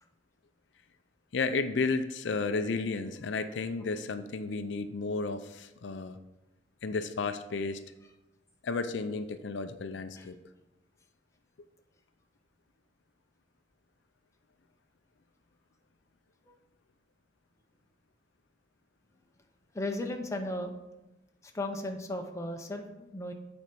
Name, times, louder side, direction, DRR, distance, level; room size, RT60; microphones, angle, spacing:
voice 1, 1.3-6.2 6.8-7.8 8.6-10.4, left 4 dB, 70° left, 10 dB, 0.5 m, -32 dB
voice 2, 19.7-20.7 21.5-23.3, left 1 dB, 15° left, 3 dB, 0.7 m, -35 dB
8.4 x 4.4 x 5.2 m, 1.0 s
head